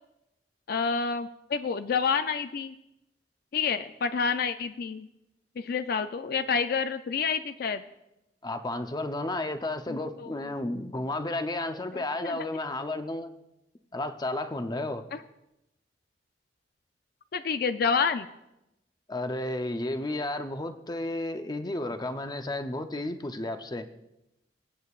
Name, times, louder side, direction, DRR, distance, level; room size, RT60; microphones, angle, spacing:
voice 1, 0.7-2.7 3.5-5.1 5.6-7.8 9.9-10.3 12.2-12.5 15.1-15.2 17.3-18.3, left 5 dB, 60° left, 10 dB, 0.4 m, -28 dB
voice 2, 8.4-13.3 13.9-15.0 19.1-23.9, left 2 dB, 25° left, 8 dB, 0.7 m, -32 dB
25.0 x 8.5 x 2.4 m, 0.89 s
head